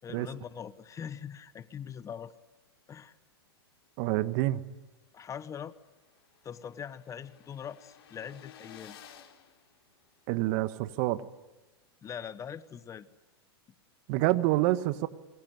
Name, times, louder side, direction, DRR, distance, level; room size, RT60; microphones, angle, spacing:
voice 1, 0.0-2.3 2.9-3.1 5.1-5.7 6.4-9.0 12.0-13.1, left 8 dB, 25° left, 15 dB, 1.1 m, -42 dB
voice 2, 4.0-4.6 10.3-11.2 14.1-15.1, right 17 dB, 50° right, 12 dB, 1.5 m, -27 dB
sound 1, 4.9-5.0 5.3-5.4 5.6-10.5, left 9 dB, 60° left, 4.3 m, -55 dB
27.0 x 23.0 x 9.6 m, 1.1 s
hypercardioid pair, 110°, 14 cm